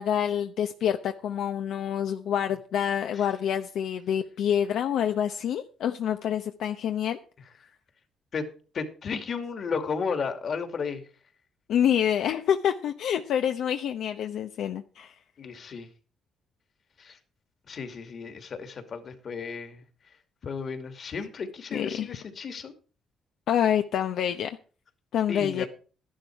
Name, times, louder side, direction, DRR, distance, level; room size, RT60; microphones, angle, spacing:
voice 1, 0.0-7.2 11.7-15.1 19.4-19.6 21.7-22.1 23.5-24.6 25.1-25.6, left 9 dB, 80° left, 0.8 m, -27 dB
voice 2, 8.7-11.0 15.4-15.9 17.0-17.2 17.7-19.8 20.4-22.7 25.3-25.7, left 5 dB, 50° left, 2.5 m, -33 dB
12.5 x 11.5 x 4.7 m
cardioid pair, 90°, 0 cm